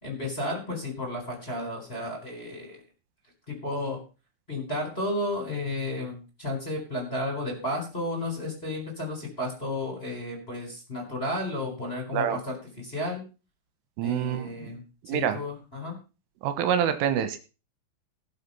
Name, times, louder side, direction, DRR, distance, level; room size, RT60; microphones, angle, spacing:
voice 1, 0.0-2.8 3.5-4.0 4.5-13.2 14.0-15.9, left 1 dB, 15° left, -1 dB, 3.8 m, -33 dB
voice 2, 14.0-14.7 15.1-15.4 16.4-17.4, right 9 dB, 80° right, 10 dB, 3.6 m, -26 dB
18.5 x 6.5 x 5.5 m, 0.34 s
omnidirectional pair, 5.8 m